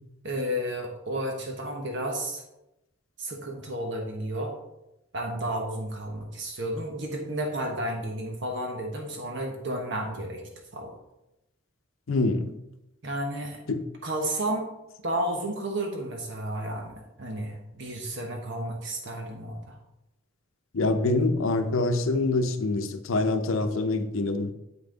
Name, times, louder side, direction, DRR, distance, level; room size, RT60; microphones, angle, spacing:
voice 1, 0.2-2.4 3.2-4.5 5.1-10.4 10.7-11.0 13.0-13.6 14.0-14.7 15.0-19.8, right 1 dB, 60° right, 1.2 m, -32 dB
voice 2, 12.1-12.5 13.7-13.8 20.7-24.5, left 2 dB, 80° left, 0.7 m, -25 dB
8.1 x 5.6 x 3.9 m
head